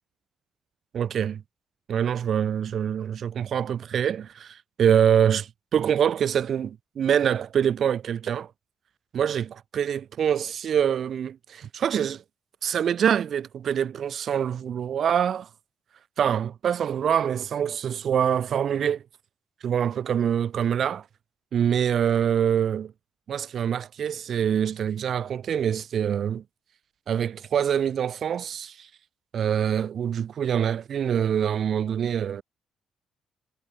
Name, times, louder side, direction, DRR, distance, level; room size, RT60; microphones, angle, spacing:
voice 1, 0.9-1.4 1.9-8.5 9.1-12.2 12.6-15.5 16.2-19.0 19.6-21.0 21.5-22.9 23.3-26.4 27.1-28.9 29.3-32.4, right 8 dB, 60° right, 2.8 m, -25 dB
cardioid pair, 90°, 0 cm